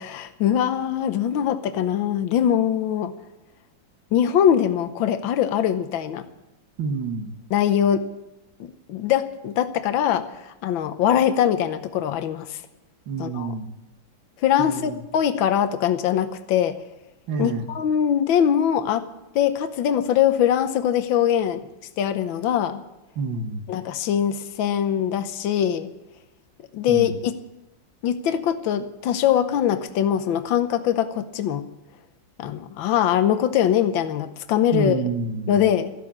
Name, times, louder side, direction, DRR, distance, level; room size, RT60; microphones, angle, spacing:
voice 1, 0.0-3.1 4.1-6.2 7.5-8.1 8.6-10.3 10.6-12.6 13.2-13.5 14.4-16.8 17.4-19.1 19.3-21.6 22.0-22.8 23.7-25.9 26.7-27.4 28.0-31.7 32.4-35.0 35.5-35.9, left 9 dB, 80° left, 10 dB, 1.6 m, -22 dB
voice 2, 6.8-7.3 13.1-13.7 14.6-15.0 17.3-17.6 23.2-23.6 26.9-27.2 34.7-35.6, right 4 dB, 75° right, 7 dB, 2.0 m, -28 dB
14.5 x 12.0 x 7.3 m, 0.96 s
omnidirectional pair, 2.1 m